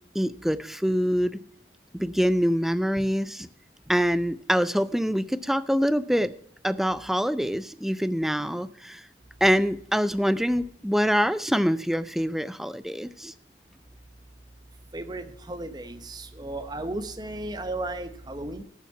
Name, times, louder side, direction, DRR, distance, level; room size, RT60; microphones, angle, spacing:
voice 1, 0.1-1.4 1.9-3.5 3.9-6.3 6.6-9.0 9.4-13.3, equal, ahead, 15 dB, 0.4 m, -25 dB
voice 2, 14.9-18.6, right 2 dB, 25° right, 10 dB, 0.9 m, -34 dB
13.5 x 7.2 x 5.8 m, 0.66 s
head